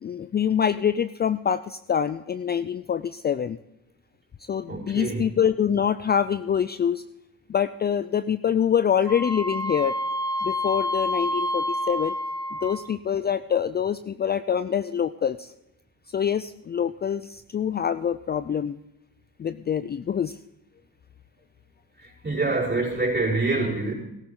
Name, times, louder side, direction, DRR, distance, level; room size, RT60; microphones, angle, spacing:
voice 1, 0.0-3.6 4.5-7.0 7.5-9.9 10.4-12.1 12.6-15.5 16.1-18.8 19.4-20.4, left 8 dB, 30° left, 0.4 m, -25 dB
voice 2, 4.7-5.2 22.0-23.9, right 3 dB, 30° right, 5.4 m, -26 dB
Wind instrument woodwind instrument, 9.1-13.0, left 1 dB, 10° left, 0.8 m, -28 dB
16.5 x 13.5 x 3.8 m
cardioid pair, 90°, 34 cm